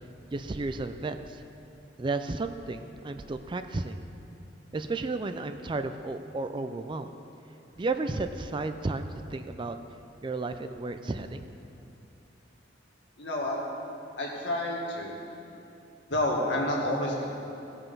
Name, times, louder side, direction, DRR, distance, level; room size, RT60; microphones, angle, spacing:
voice 1, 0.3-1.4 2.0-4.0 4.7-7.1 7.8-9.8 10.2-11.5, right 3 dB, 25° right, 9 dB, 0.4 m, -33 dB
voice 2, 13.2-13.6 14.2-15.2 16.1-17.2, left 1 dB, 75° left, -2 dB, 1.9 m, -29 dB
16.0 x 5.6 x 5.4 m, 2.9 s
head